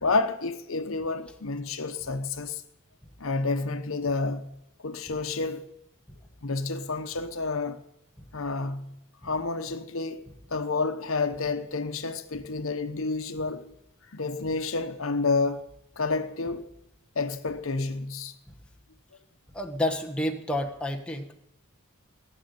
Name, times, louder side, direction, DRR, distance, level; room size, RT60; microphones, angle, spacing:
voice 1, 0.0-2.6 3.2-4.5 4.8-5.6 6.4-7.8 8.3-8.9 9.2-10.2 10.5-13.7 14.1-15.7 16.0-16.7 17.1-18.3, left 3 dB, 65° left, 1.0 m, -29 dB
voice 2, 19.5-21.3, left 1 dB, 5° left, 1.1 m, -29 dB
17.5 x 6.5 x 9.5 m
head